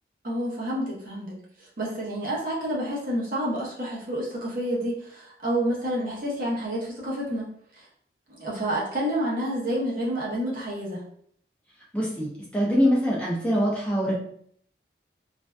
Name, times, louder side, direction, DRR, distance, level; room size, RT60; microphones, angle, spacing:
voice 1, 0.2-7.9 8.3-11.0, right 1 dB, 50° right, -5 dB, 0.7 m, -29 dB
voice 2, 11.9-14.2, equal, 5° left, -5 dB, 0.4 m, -24 dB
2.5 x 2.2 x 2.2 m, 0.63 s
head